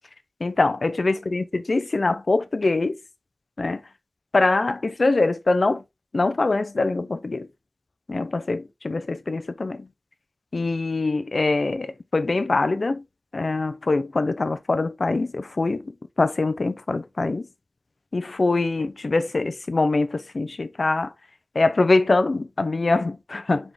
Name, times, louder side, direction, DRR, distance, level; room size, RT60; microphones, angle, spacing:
voice 1, 0.4-3.0 3.6-3.8 4.3-5.8 6.1-7.5 8.1-9.9 10.5-13.0 13.3-17.5 18.1-21.1 21.5-23.7, left 3 dB, 75° left, 0.6 m, -23 dB
5.0 x 5.0 x 3.8 m
wide cardioid pair, 60°, 0 cm